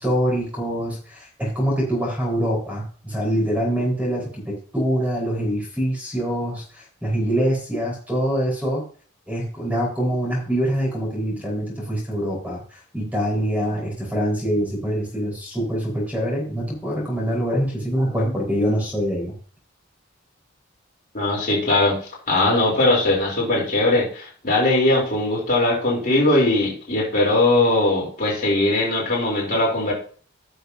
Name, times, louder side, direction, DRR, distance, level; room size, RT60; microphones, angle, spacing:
voice 1, 0.0-4.4 4.7-8.9 9.3-19.3, equal, 5° right, -3 dB, 4.5 m, -24 dB
voice 2, 21.1-22.0 22.3-29.9, left 2 dB, 40° left, -5 dB, 3.4 m, -20 dB
16.5 x 6.6 x 2.7 m, 0.44 s
head